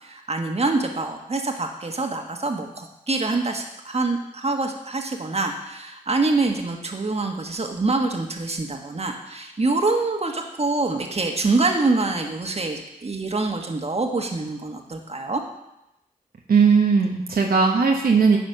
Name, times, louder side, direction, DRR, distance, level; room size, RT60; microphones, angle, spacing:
voice 1, 0.0-15.4, right 3 dB, 45° right, 3 dB, 1.4 m, -25 dB
voice 2, 16.5-18.4, right 5 dB, 75° right, 0 dB, 1.0 m, -18 dB
10.0 x 4.4 x 6.6 m, 0.89 s
cardioid pair, 45°, 15 cm